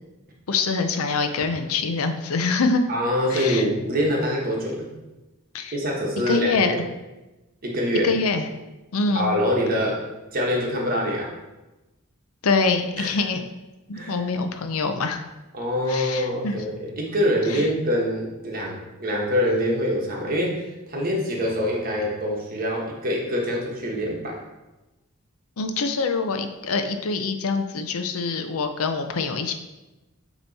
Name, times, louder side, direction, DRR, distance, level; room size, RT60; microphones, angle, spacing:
voice 1, 0.5-2.8 3.3-3.7 5.5-5.8 6.3-6.7 8.0-8.5 8.9-9.3 12.4-13.4 13.9-15.2 15.9-16.5 17.5-17.7 25.6-29.5, left 4 dB, 70° left, 7 dB, 0.6 m, -24 dB
voice 2, 2.9-4.9 5.7-6.8 7.6-8.1 9.1-10.1 10.3-11.3 13.0-13.1 13.9-14.2 15.5-24.4, equal, 40° right, -2 dB, 1.3 m, -25 dB
8.7 x 3.1 x 4.1 m, 1.1 s
head